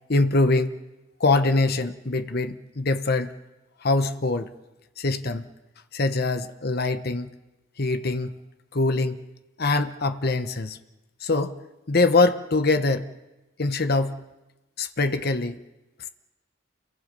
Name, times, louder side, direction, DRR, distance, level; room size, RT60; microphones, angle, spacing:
voice 1, 0.1-0.8 1.2-3.3 3.8-4.5 5.0-5.5 5.9-7.3 7.8-8.3 8.7-9.2 9.6-10.8 11.2-11.6 11.9-13.1 13.6-14.2 14.8-15.6, left 3 dB, 50° left, 9 dB, 1.1 m, -23 dB
29.5 x 23.0 x 5.4 m, 1.1 s
head